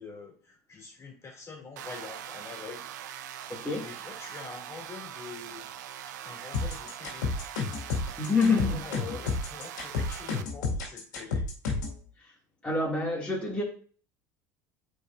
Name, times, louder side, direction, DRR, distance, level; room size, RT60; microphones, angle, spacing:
voice 1, 0.0-2.9 3.8-5.7 6.1-7.3 8.5-11.4, left 4 dB, 30° left, 3.0 m, -45 dB
sound 1, 1.8-10.4, right 10 dB, 80° right, 0.6 m, -42 dB
voice 2, 3.5-3.9 8.2-8.8 12.2-12.3 12.6-13.6, left 3 dB, 10° left, 2.6 m, -27 dB
sound 2, 6.5-12.0, left 4 dB, 90° left, 2.3 m, -31 dB
9.2 x 5.0 x 2.7 m
hypercardioid pair, 85°, 9 cm